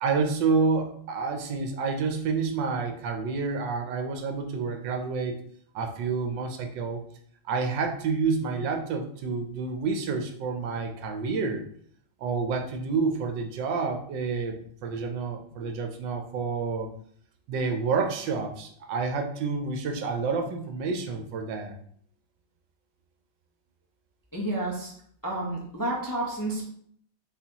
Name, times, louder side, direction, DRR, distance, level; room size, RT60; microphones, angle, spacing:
voice 1, 0.0-5.4 5.7-7.0 7.4-11.6 12.2-16.9 17.5-21.7, right 4 dB, 80° right, 3 dB, 1.4 m, -29 dB
voice 2, 24.3-24.9 25.2-26.6, right 1 dB, 20° left, -4 dB, 0.5 m, -30 dB
4.2 x 4.2 x 2.9 m, 0.63 s
omnidirectional pair, 1.9 m